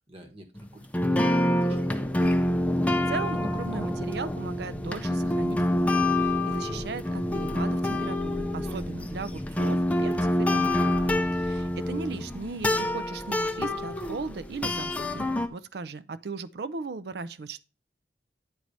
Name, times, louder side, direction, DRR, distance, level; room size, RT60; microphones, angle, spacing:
voice 1, 0.1-0.5 0.7-1.9 11.0-11.5, right 1 dB, 30° right, 1.3 m, -48 dB
sound 1, 0.6-0.7 0.9-15.5, left 1 dB, 10° left, 0.5 m, -27 dB
voice 2, 3.1-10.9 11.5-17.6, right 4 dB, 60° right, 0.5 m, -37 dB
8.6 x 4.6 x 4.0 m
head